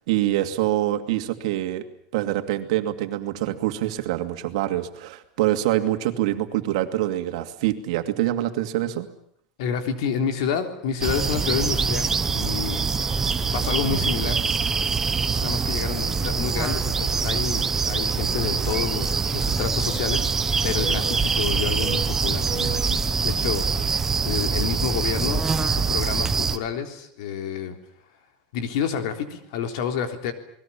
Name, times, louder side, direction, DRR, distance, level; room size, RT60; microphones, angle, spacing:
voice 1, 0.1-1.8 2.1-9.1, right 14 dB, 75° right, 7 dB, 2.4 m, -25 dB
voice 2, 9.6-12.8 13.5-14.4 15.4-20.3 20.6-27.8 28.5-30.3, left 7 dB, 70° left, 6 dB, 3.7 m, -29 dB
sound 1, 11.0-26.6, right 5 dB, 15° right, 1.0 m, -24 dB
29.5 x 20.5 x 7.2 m, 0.65 s
supercardioid pair, 170°, 3 cm